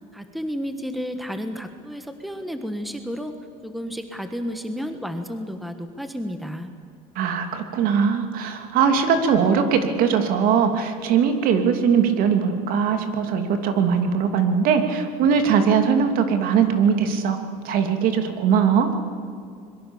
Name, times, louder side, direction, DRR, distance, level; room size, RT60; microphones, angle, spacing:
voice 1, 0.1-3.3 3.6-6.7, equal, ahead, 7 dB, 1.4 m, -31 dB
voice 2, 7.1-17.4 17.6-18.9, right 6 dB, 55° right, 6 dB, 2.8 m, -20 dB
25.0 x 22.5 x 7.3 m, 2.3 s
cardioid pair, 140°, 17 cm